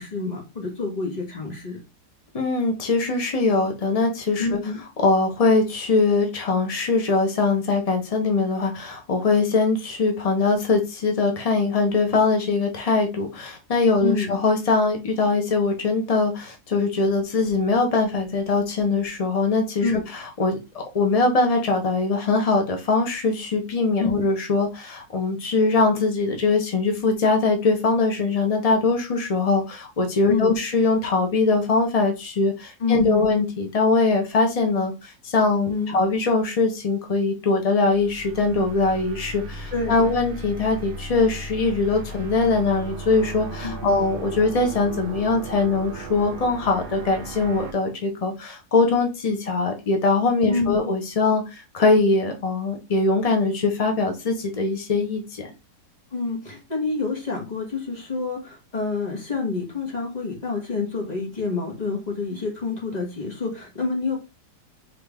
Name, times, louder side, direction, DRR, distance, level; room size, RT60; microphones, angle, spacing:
voice 1, 0.0-1.8 4.4-4.8 14.0-14.3 19.8-20.0 24.0-24.1 30.3-30.6 32.8-33.4 35.7-36.0 39.7-39.9 43.6-44.0 50.5-50.9 56.1-64.2, left 4 dB, 25° left, 0 dB, 1.5 m, -27 dB
voice 2, 2.3-4.6 5.0-55.5, left 3 dB, 55° left, 3 dB, 0.4 m, -22 dB
sound 1, 37.9-47.7, right 2 dB, 75° right, 0.5 m, -36 dB
3.8 x 3.3 x 3.5 m, 0.28 s
omnidirectional pair, 1.7 m